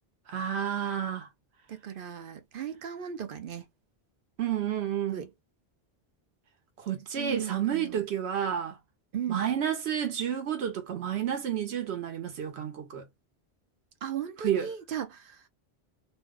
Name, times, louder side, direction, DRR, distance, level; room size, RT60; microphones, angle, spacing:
voice 1, 0.3-1.3 4.4-5.3 6.8-8.8 9.3-13.0 14.4-14.7, right 9 dB, 85° right, 1.0 m, -30 dB
voice 2, 1.7-3.6 5.1-5.3 7.2-8.1 9.1-9.5 14.0-15.5, right 9 dB, 60° right, 0.8 m, -36 dB
2.6 x 2.2 x 3.5 m
omnidirectional pair, 1.1 m